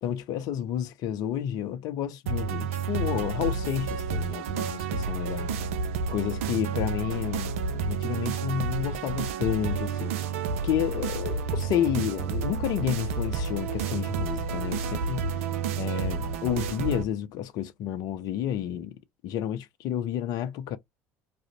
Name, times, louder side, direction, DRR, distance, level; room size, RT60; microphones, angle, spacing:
voice 1, 0.0-5.5 6.1-10.1 10.6-15.2 15.8-19.0 19.2-20.8, left 10 dB, 60° left, 0.5 m, -30 dB
sound 1, 2.3-17.0, right 5 dB, 80° right, 0.4 m, -30 dB
2.5 x 2.0 x 2.8 m
hypercardioid pair, 65°, 7 cm